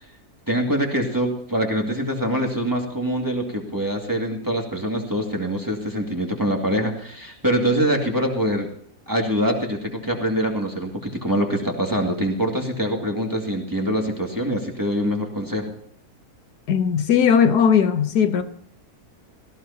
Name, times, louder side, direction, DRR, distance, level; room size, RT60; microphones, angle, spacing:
voice 1, 0.5-8.7 9.1-15.7, equal, 10° right, 2.2 m, -24 dB
voice 2, 16.7-18.4, left 7 dB, 80° left, 1.5 m, -18 dB
18.0 x 14.5 x 2.9 m
omnidirectional pair, 1.7 m